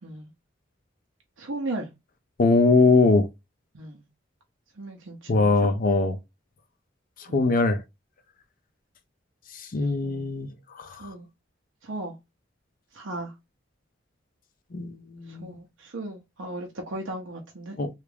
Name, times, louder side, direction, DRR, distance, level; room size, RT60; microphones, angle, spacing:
voice 1, 0.0-0.3 1.4-1.9 3.7-4.0 4.8-5.7 7.3-7.5 10.0-10.3 11.0-11.3 11.8-12.2 12.9-13.3 15.3-17.8, right 2 dB, 70° right, 0.7 m, -36 dB
voice 2, 2.4-3.3 5.3-6.2 7.3-7.8 9.5-10.5 10.8-11.1 14.7-15.5 17.8-17.9, left 3 dB, 45° left, 0.5 m, -21 dB
3.4 x 2.4 x 3.3 m
head